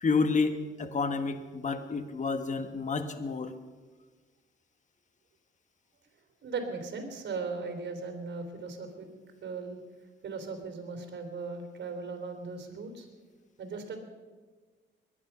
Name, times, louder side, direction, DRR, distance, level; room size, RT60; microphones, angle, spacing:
voice 1, 0.0-3.5, left 4 dB, 40° left, 9 dB, 1.5 m, -30 dB
voice 2, 6.4-9.1 9.4-9.8 10.2-13.1 13.6-14.0, right 4 dB, 60° right, 5 dB, 3.3 m, -38 dB
21.5 x 10.5 x 5.7 m, 1.4 s
cardioid pair, 90°, 20 cm